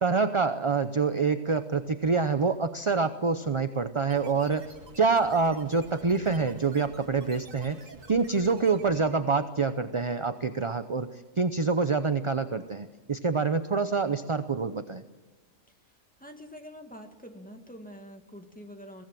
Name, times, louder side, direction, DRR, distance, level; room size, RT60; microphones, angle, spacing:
voice 1, 0.0-15.0, right 4 dB, 30° right, 9 dB, 0.6 m, -26 dB
sound 1, 4.1-9.3, right 3 dB, 70° right, 2.1 m, -49 dB
voice 2, 16.2-19.0, equal, 5° left, 4 dB, 1.9 m, -45 dB
22.5 x 17.5 x 7.6 m, 1.2 s
omnidirectional pair, 1.4 m